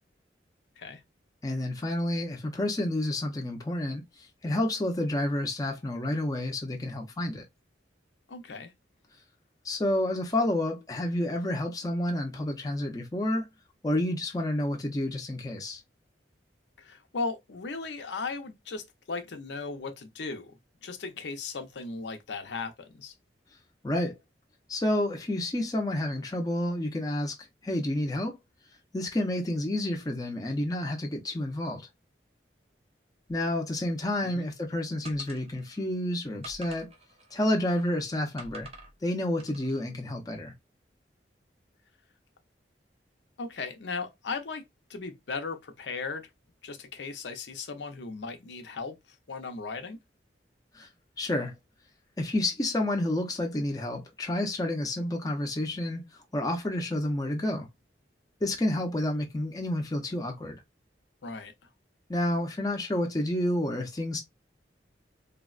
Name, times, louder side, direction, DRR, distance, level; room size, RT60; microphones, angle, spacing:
voice 1, 1.4-4.0 4.4-7.4 9.6-13.5 13.8-15.8 23.8-24.2 24.7-27.3 27.6-28.4 28.9-31.8 33.3-36.9 37.3-38.7 39.0-40.5 50.7-50.9 51.2-51.5 52.2-56.0 56.3-57.7 58.4-60.6 62.1-64.2, left 1 dB, 20° left, 0.5 m, -29 dB
voice 2, 8.3-8.7 16.8-23.1 34.2-34.5 43.4-44.6 44.9-46.3 46.6-49.0 49.3-50.0 61.2-61.5, left 4 dB, 80° left, 0.6 m, -37 dB
sound 1, 35.0-35.8 36.4-37.9 38.4-38.9 39.4-39.8, right 2 dB, 35° right, 0.7 m, -48 dB
3.4 x 2.1 x 2.3 m
head